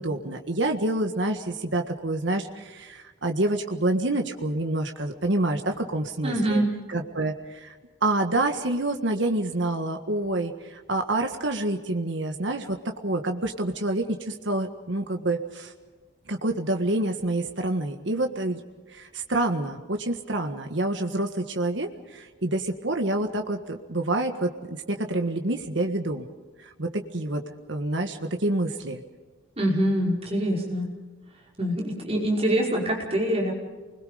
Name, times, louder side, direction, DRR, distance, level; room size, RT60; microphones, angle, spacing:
voice 1, 0.0-6.6 6.9-7.7 8.0-15.7 16.3-18.6 18.9-26.3 26.6-27.4 27.7-29.0, right 2 dB, 65° right, 4 dB, 1.6 m, -27 dB
voice 2, 6.2-6.7 29.6-30.9 31.6-33.5, right 1 dB, 30° right, -2 dB, 5.4 m, -24 dB
28.5 x 21.5 x 5.2 m, 1.3 s
head